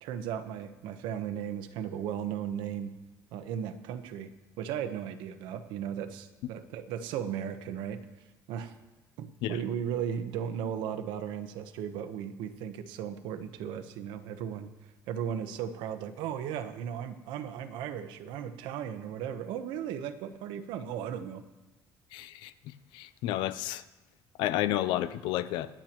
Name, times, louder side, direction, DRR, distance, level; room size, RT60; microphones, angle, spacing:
voice 1, 0.0-2.9 3.3-4.3 4.6-8.0 8.5-8.7 9.2-14.7 15.1-21.4, right 9 dB, 80° right, 8 dB, 1.0 m, -36 dB
voice 2, 22.1-22.5 22.9-23.8 24.4-25.7, left 13 dB, 80° left, 14 dB, 0.6 m, -31 dB
26.5 x 8.8 x 3.0 m, 1.1 s
cardioid pair, 175°, 8 cm